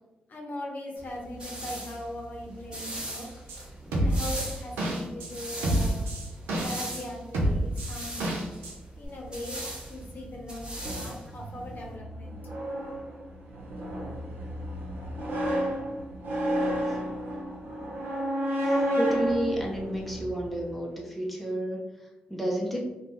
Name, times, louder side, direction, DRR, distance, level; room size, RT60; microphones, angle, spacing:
voice 1, 0.3-3.4 4.0-6.0 6.5-8.4 9.0-12.4, left 1 dB, 55° left, 0 dB, 0.7 m, -40 dB
sound 1, 1.0-11.9, right 1 dB, 25° right, 1.0 m, -40 dB
sound 2, 3.5-3.6 3.9-5.3 5.6-7.0 7.3-8.7 9.0-9.1, right 1 dB, 90° right, 0.6 m, -27 dB
sound 3, 10.8-20.7, equal, 70° right, 0.9 m, -31 dB
voice 2, 18.6-22.9, right 1 dB, ahead, -1 dB, 0.6 m, -31 dB
2.4 x 2.2 x 3.0 m, 1.1 s
supercardioid pair, 45°, 4 cm